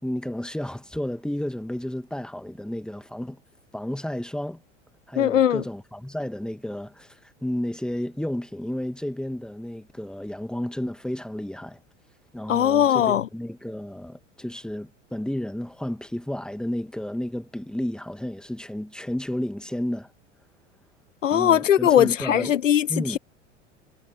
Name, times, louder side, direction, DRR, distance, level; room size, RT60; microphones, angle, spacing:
voice 1, 0.0-3.4 3.7-4.6 5.1-11.8 12.3-20.1 21.3-22.5 22.9-23.2, left 1 dB, ahead, 2.6 m, -32 dB
voice 2, 5.2-5.6 12.5-13.3 21.2-23.2, left 10 dB, 80° left, 0.6 m, -20 dB
figure-of-eight pair, 80°, 37 cm